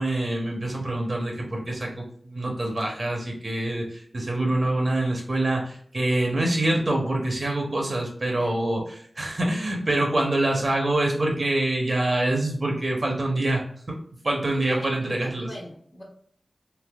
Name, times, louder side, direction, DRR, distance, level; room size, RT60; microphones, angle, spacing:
voice 1, 0.0-13.6 14.2-15.5, right 1 dB, 50° right, 1 dB, 0.7 m, -25 dB
voice 2, 14.5-14.9 15.2-16.0, left 1 dB, 45° left, -2 dB, 1.3 m, -41 dB
3.3 x 2.7 x 2.3 m, 0.62 s
wide cardioid pair, 70°, 0 cm